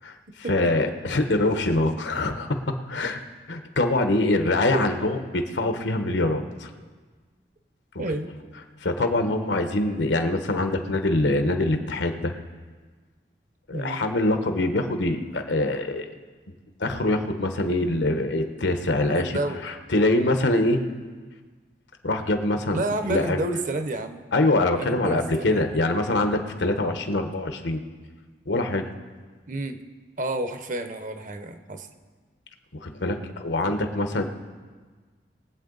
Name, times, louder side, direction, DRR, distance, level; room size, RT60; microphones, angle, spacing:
voice 1, 0.5-3.2 3.5-6.7 7.9-8.0 8.8-12.3 13.7-16.1 16.8-19.3 19.6-20.8 22.0-22.8 23.1-23.4 24.3-27.8 28.5-28.8 32.8-34.2, left 2 dB, 90° left, 6 dB, 1.1 m, -24 dB
voice 2, 8.0-8.3 13.7-14.0 19.1-19.6 22.7-24.3 24.8-25.6 29.5-29.8 30.2-31.9, right 2 dB, 45° right, 8 dB, 0.8 m, -30 dB
22.0 x 8.1 x 4.0 m, 1.4 s
head